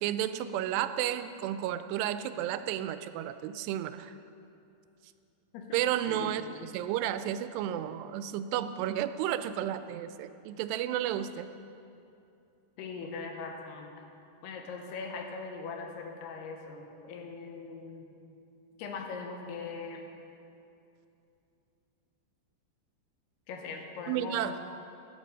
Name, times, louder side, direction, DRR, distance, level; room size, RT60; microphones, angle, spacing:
voice 1, 0.0-4.1 5.7-11.5 24.1-24.5, right 11 dB, 85° right, 11 dB, 2.7 m, -32 dB
voice 2, 6.0-6.4 12.8-14.1 14.4-18.1 18.8-20.0 23.5-24.6, left 4 dB, 80° left, 2 dB, 3.1 m, -40 dB
13.5 x 9.9 x 5.4 m, 2.7 s
omnidirectional pair, 4.8 m